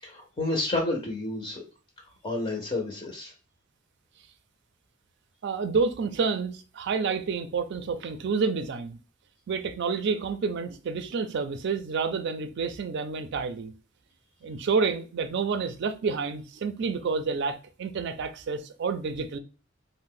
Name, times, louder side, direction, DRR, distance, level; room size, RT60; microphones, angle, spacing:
voice 1, 0.0-1.6 2.2-3.3, left 2 dB, 25° left, 0.5 m, -30 dB
voice 2, 5.4-9.0 9.5-13.7 14.4-19.4, right 5 dB, 60° right, 0.4 m, -29 dB
2.6 x 2.1 x 3.7 m
head